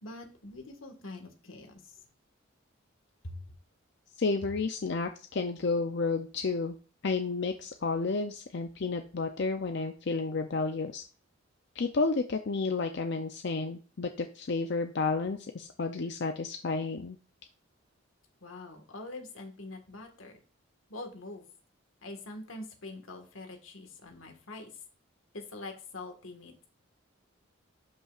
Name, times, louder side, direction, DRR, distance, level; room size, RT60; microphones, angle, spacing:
voice 1, 0.0-2.0 3.2-3.4 18.4-20.4 20.9-21.5 22.0-24.7 25.3-26.5, left 2 dB, 80° left, 5 dB, 1.7 m, -44 dB
voice 2, 4.2-6.8 7.0-11.0 11.8-17.2, left 4 dB, 55° left, 6 dB, 0.6 m, -31 dB
12.0 x 5.6 x 2.5 m, 0.37 s
head